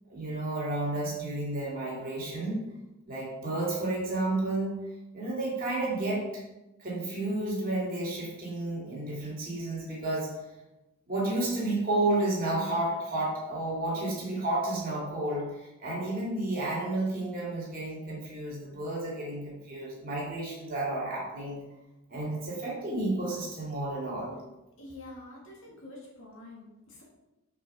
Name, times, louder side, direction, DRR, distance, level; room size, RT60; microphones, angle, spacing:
voice 1, 0.1-2.6 3.1-4.8 5.1-6.4 6.8-10.3 11.1-21.6 22.1-24.3, right 2 dB, 40° right, -5 dB, 2.5 m, -31 dB
voice 2, 24.8-27.0, left 2 dB, 60° left, -3 dB, 2.1 m, -47 dB
6.3 x 5.3 x 4.1 m, 1.0 s
head